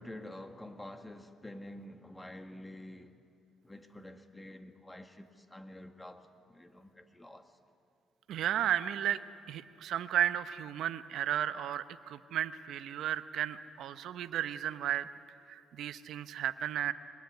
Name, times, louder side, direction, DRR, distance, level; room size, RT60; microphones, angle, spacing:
voice 1, 0.0-3.2 3.6-7.5, left 1 dB, 10° left, 1.8 m, -48 dB
voice 2, 8.3-9.2 9.5-15.1 15.5-16.9, right 11 dB, 80° right, 0.9 m, -34 dB
23.0 x 21.0 x 9.5 m
cardioid pair, 90°, 0 cm